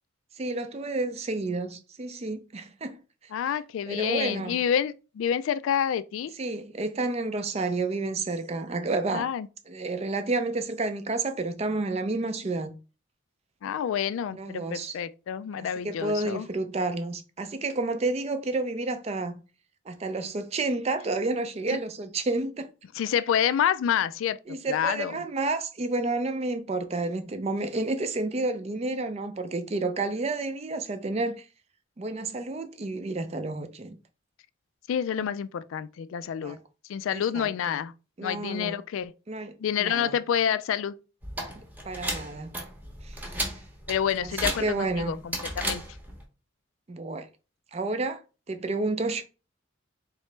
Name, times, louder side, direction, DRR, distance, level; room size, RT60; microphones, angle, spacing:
voice 1, 0.4-3.0 3.5-3.6 3.9-4.6 6.4-9.3 9.7-12.7 14.3-14.9 15.6-19.4 19.9-22.7 24.5-31.4 32.0-34.0 35.2-35.3 36.4-36.6 37.1-37.8 38.2-38.8 39.3-40.2 41.8-42.6 43.0-43.3 44.2-45.2 46.9-47.3 47.7-48.2 48.5-49.2, right 3 dB, 30° right, 0.4 m, -30 dB
voice 2, 3.3-6.3 9.1-9.5 13.6-16.5 22.9-25.2 34.9-36.6 36.9-37.9 38.2-39.1 39.6-40.9 43.9-45.8, left 8 dB, 85° left, 0.3 m, -28 dB
sound 1, 41.2-46.2, right 1 dB, 10° right, 0.8 m, -35 dB
3.7 x 3.1 x 3.2 m
head